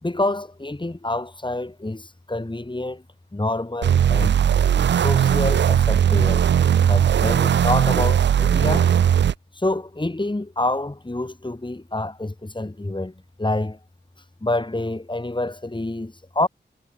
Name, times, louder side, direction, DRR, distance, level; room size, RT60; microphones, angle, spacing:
voice 1, 0.0-3.0 3.3-4.4 4.9-6.5 6.8-8.9 9.5-13.8 14.4-16.5, left 2 dB, 25° left, 5.0 m, -27 dB
sound 1, 3.8-9.3, right 9 dB, 70° right, 0.4 m, -18 dB
cardioid pair, 50°, 19 cm